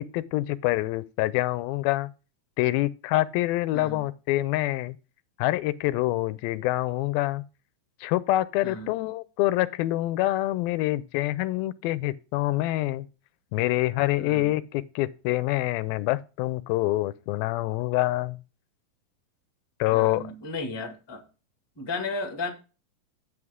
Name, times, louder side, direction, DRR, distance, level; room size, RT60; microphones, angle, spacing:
voice 1, 0.0-2.1 2.6-5.0 5.4-7.4 8.0-13.1 13.5-18.4 19.8-20.2, left 17 dB, 85° left, 2.4 m, -26 dB
voice 2, 3.7-4.0 8.6-8.9 14.2-14.6 19.9-21.2 21.8-22.5, left 3 dB, 10° left, 1.3 m, -34 dB
11.0 x 8.3 x 3.6 m
omnidirectional pair, 4.2 m